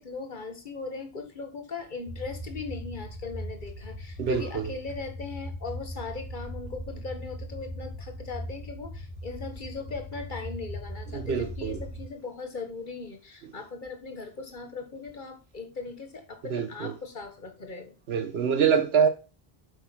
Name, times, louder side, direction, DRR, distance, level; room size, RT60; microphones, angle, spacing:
voice 1, 0.0-17.9, left 4 dB, 50° left, 1.6 m, -39 dB
sound 1, 2.1-12.1, equal, 10° right, 1.9 m, -39 dB
voice 2, 4.2-4.7 11.1-11.8 16.5-16.9 18.1-19.1, right 7 dB, 80° right, 1.1 m, -25 dB
8.0 x 5.1 x 5.7 m
omnidirectional pair, 1.0 m